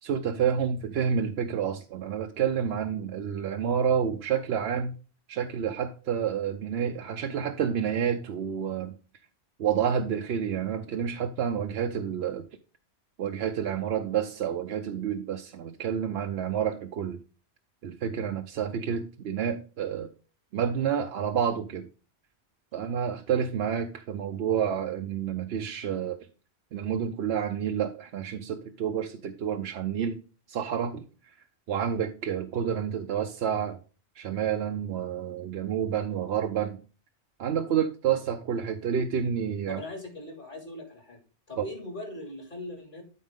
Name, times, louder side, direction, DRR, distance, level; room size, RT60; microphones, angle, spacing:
voice 1, 0.0-4.9 5.3-8.9 9.6-12.5 13.2-17.2 17.8-20.1 20.5-21.9 22.7-26.2 26.7-30.2 30.5-31.3 31.7-33.8 34.2-36.8 37.4-39.8 41.6-41.7, right 8 dB, 70° right, 0.9 m, -29 dB
voice 2, 39.7-41.2 41.5-43.0, left 1 dB, 50° left, 2.8 m, -40 dB
12.5 x 4.2 x 3.6 m
omnidirectional pair, 1.1 m